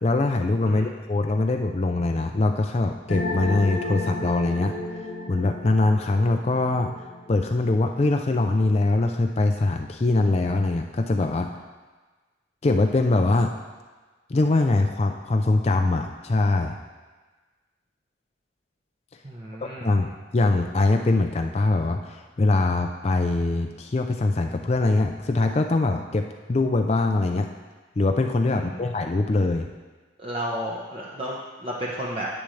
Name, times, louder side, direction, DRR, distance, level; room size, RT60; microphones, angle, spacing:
voice 1, 0.0-4.7 5.3-6.9 7.3-11.6 12.6-13.5 14.3-16.8 19.8-27.5 28.0-29.7, left 2 dB, 35° left, 4 dB, 0.4 m, -23 dB
sound 1, 3.1-7.5, left 2 dB, 80° left, 0.9 m, -33 dB
voice 2, 19.2-19.9 28.5-28.8 30.2-32.3, equal, 30° right, -4 dB, 0.8 m, -32 dB
10.5 x 8.9 x 3.2 m, 1.3 s
head